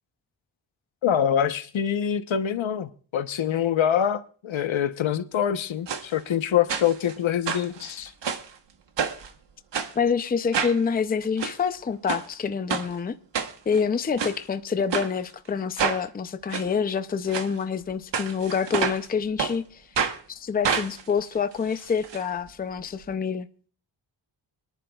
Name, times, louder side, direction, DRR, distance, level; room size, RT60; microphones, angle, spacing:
voice 1, 1.0-8.1, left 9 dB, 80° left, 1.0 m, -25 dB
sound 1, 5.9-6.0 6.7-7.1 7.5-8.5 9.0-9.3 9.7-9.9 10.5-10.8 11.2-11.5 12.1-12.3 12.7-12.9 13.3-13.8 14.2-14.4 14.9-15.1 15.8-16.0 16.5-16.7 17.3-17.5 18.1-19.1 19.4-19.5 20.0-20.2 20.6-22.2 22.5-22.6 22.8-22.9, right 6 dB, 65° right, 1.3 m, -28 dB
voice 2, 10.0-13.2 13.7-19.8 20.4-23.5, left 6 dB, 20° left, 0.5 m, -27 dB
25.0 x 11.0 x 2.3 m
wide cardioid pair, 180°, 46 cm